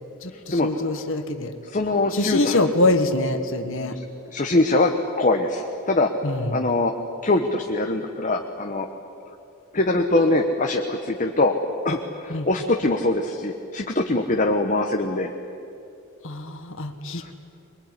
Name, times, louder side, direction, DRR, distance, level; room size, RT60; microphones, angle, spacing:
voice 1, 0.2-1.5 2.1-4.0 6.2-6.6 12.3-12.5 16.2-17.3, left 2 dB, 60° left, 7 dB, 1.7 m, -24 dB
voice 2, 1.7-2.6 3.8-3.9 4.3-6.1 6.5-6.9 7.2-8.9 9.7-11.5 11.8-15.3 17.2-17.3, left 2 dB, 35° left, 3 dB, 1.2 m, -22 dB
23.0 x 22.5 x 9.9 m, 2.7 s
head